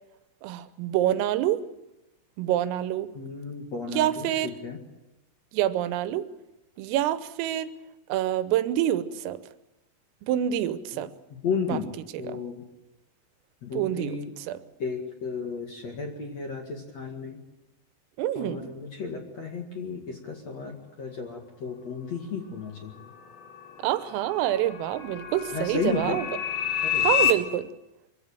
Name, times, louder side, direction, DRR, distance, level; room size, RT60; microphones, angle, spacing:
voice 1, 0.4-1.6 2.4-3.1 3.9-4.6 5.5-6.3 6.8-7.7 8.1-9.4 10.2-11.1 11.7-11.8 12.2-12.4 13.7-14.6 18.2-18.7 23.8-26.3 27.0-27.7, right 12 dB, 90° right, 13 dB, 3.6 m, -27 dB
voice 2, 3.1-4.8 10.9-11.0 11.4-11.9 12.2-12.6 13.6-14.3 14.8-17.4 18.4-23.0 25.5-26.2 26.8-27.3, left 5 dB, 50° left, 2 dB, 2.3 m, -33 dB
sound 1, 23.0-27.3, left 10 dB, 80° left, 4.3 m, -29 dB
24.0 x 16.0 x 9.1 m, 0.98 s
omnidirectional pair, 5.8 m